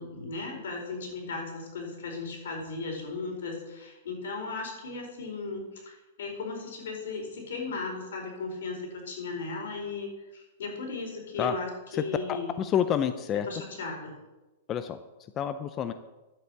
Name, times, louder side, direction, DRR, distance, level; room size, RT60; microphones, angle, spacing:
voice 1, 0.0-12.5 13.4-14.1, left 3 dB, 80° left, 1 dB, 4.8 m, -36 dB
voice 2, 11.9-13.5 14.7-15.0 15.4-15.9, left 9 dB, 20° left, 10 dB, 0.4 m, -28 dB
11.5 x 8.0 x 7.1 m, 1.1 s
supercardioid pair, 170°, 0 cm